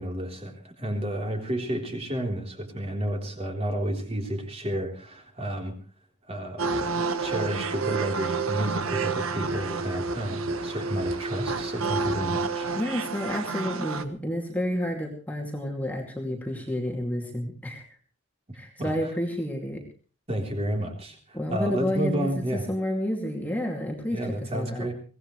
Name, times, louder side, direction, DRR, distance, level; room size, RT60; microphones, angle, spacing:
voice 1, 0.0-5.7 6.3-6.9 7.2-12.7 18.8-18.9 20.3-22.6 24.1-24.9, right 1 dB, 25° right, 2 dB, 3.6 m, -31 dB
sound 1, 6.6-14.0, right 4 dB, 70° right, 1.4 m, -29 dB
voice 2, 12.7-18.0 18.5-19.8 21.3-24.9, left 1 dB, 5° left, 0 dB, 2.4 m, -30 dB
23.5 x 17.5 x 3.2 m, 0.39 s
head